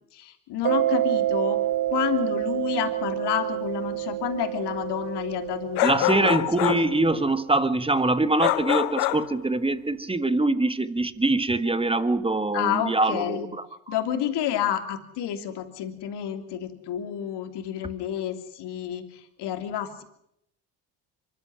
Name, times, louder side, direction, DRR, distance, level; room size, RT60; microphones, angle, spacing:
voice 1, 0.1-1.6 1.9-6.9 12.5-13.5 13.9-20.0, left 10 dB, 70° left, 7 dB, 3.1 m, -30 dB
Mallet percussion, 0.6-7.0, right 13 dB, 50° right, 1.2 m, -28 dB
sound 1, 5.8-6.9 8.4-9.3, left 19 dB, 85° left, 0.9 m, -25 dB
voice 2, 5.8-13.9, right 2 dB, 15° right, 13 dB, 1.5 m, -24 dB
24.5 x 13.0 x 9.9 m, 0.75 s
supercardioid pair, 85°, 43 cm